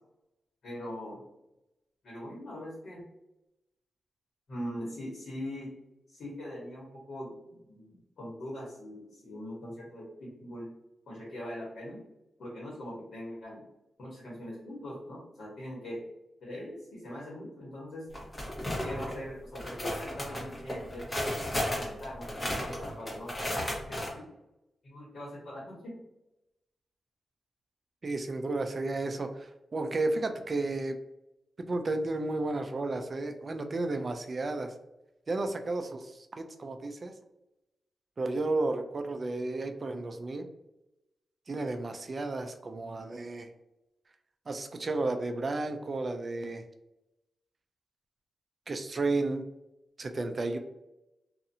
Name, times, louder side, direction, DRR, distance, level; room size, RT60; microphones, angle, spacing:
voice 1, 0.6-1.2 2.0-3.1 4.5-5.7 6.1-10.7 11.1-12.0 12.4-13.6 14.0-16.0 16.4-18.1 18.8-21.4 21.7-23.4 23.9-24.2 24.8-26.0, left 1 dB, 75° left, -5 dB, 1.1 m, -41 dB
sound 1, 18.1-19.2 19.6-24.1, left 1 dB, 25° left, 1.1 m, -34 dB
voice 2, 28.0-31.0 31.6-34.7 35.3-37.1 38.2-40.5 41.5-43.5 44.5-46.6 48.7-49.4 50.0-50.6, right 2 dB, 45° right, 7 dB, 0.3 m, -32 dB
2.6 x 2.4 x 2.6 m, 0.93 s
cardioid pair, 60°, 0 cm